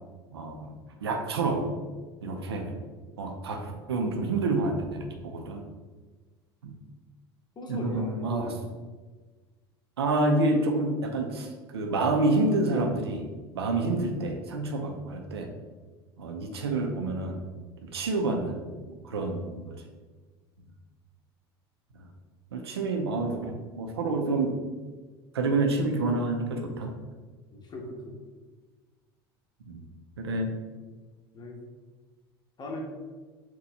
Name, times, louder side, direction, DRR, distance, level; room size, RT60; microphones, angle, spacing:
voice 1, 0.3-0.7 1.0-1.7 2.2-2.7 3.2-5.6 6.6-6.7 7.7-8.5 10.0-13.3 13.5-15.5 16.2-17.5 17.9-18.6 18.9-19.7 22.5-24.6 25.3-26.9 29.7-29.8 30.2-30.5, right 2 dB, 90° right, 4 dB, 0.5 m, -28 dB
voice 2, 7.6-8.7 27.5-28.2 31.3-31.6 32.6-32.8, left 1 dB, 35° left, 1 dB, 1.0 m, -40 dB
4.3 x 2.3 x 4.0 m, 1.4 s
hypercardioid pair, 80°, 13 cm